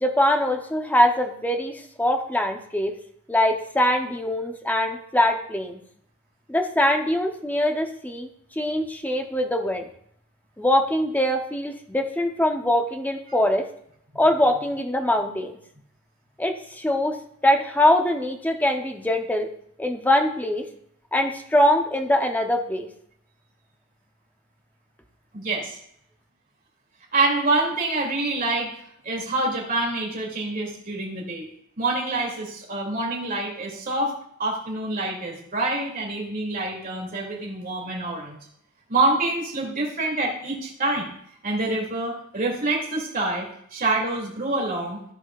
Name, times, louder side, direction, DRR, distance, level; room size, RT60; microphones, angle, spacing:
voice 1, 0.0-2.9 3.3-5.8 6.5-8.3 8.6-9.9 10.6-13.7 14.1-15.5 16.4-17.2 17.4-19.5 19.8-20.7 21.1-22.9, left 1 dB, 10° left, 4 dB, 0.8 m, -22 dB
voice 2, 25.3-25.8 27.1-28.7 29.0-31.5 31.8-34.1 34.4-38.4 38.9-41.1 41.4-43.5 43.7-45.0, right 2 dB, 40° right, -3 dB, 2.7 m, -26 dB
15.0 x 5.0 x 2.5 m, 0.69 s
head